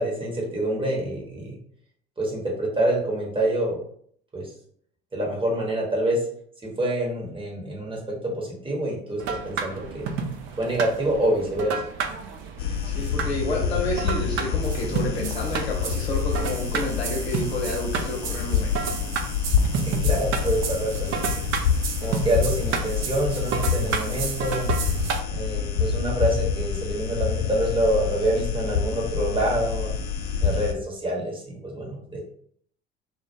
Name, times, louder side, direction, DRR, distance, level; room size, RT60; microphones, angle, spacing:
voice 1, 0.0-1.6 2.2-3.8 4.3-4.5 5.1-6.2 6.8-10.1 10.6-11.8 19.7-21.3 22.0-24.7 25.3-29.9 30.4-32.2, right 1 dB, 15° right, -3 dB, 0.9 m, -26 dB
sound 1, 9.2-25.2, right 6 dB, 40° right, 0.4 m, -31 dB
sound 2, 12.6-30.7, left 7 dB, 50° left, 0.5 m, -27 dB
voice 2, 12.8-18.9, left 1 dB, 85° left, -1 dB, 0.7 m, -30 dB
2.1 x 2.1 x 2.8 m, 0.63 s
figure-of-eight pair, 65°, 31 cm